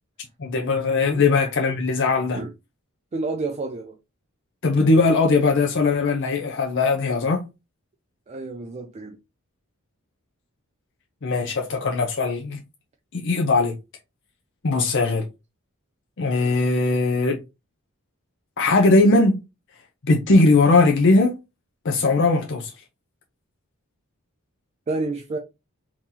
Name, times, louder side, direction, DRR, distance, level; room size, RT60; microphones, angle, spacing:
voice 1, 0.4-2.4 4.6-7.4 11.2-12.6 13.1-13.8 14.6-15.2 16.2-17.4 18.6-19.4 20.0-21.4 21.8-22.7, left 3 dB, 60° left, 0.6 m, -19 dB
voice 2, 3.1-4.0 8.3-9.2 24.9-25.4, right 3 dB, 30° right, 0.4 m, -29 dB
3.8 x 2.9 x 2.7 m
head